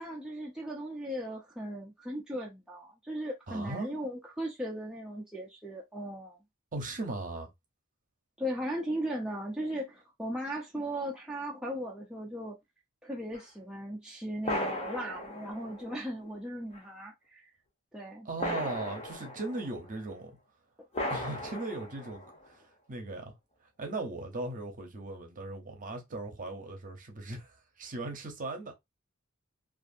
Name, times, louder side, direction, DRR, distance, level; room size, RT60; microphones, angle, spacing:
voice 1, 0.0-6.4 8.4-12.6 13.0-17.5 17.9-18.3, equal, 5° right, 0.4 m, -37 dB
voice 2, 3.5-3.9 6.7-7.5 18.2-20.4 21.1-22.6 22.9-23.3 23.8-27.5 27.8-28.8, right 2 dB, 40° right, 0.7 m, -38 dB
sound 1, 13.3-13.4 14.4-16.2 16.7-16.8 18.4-20.0 20.9-22.5, left 1 dB, 30° left, 0.7 m, -37 dB
2.5 x 2.4 x 2.5 m
head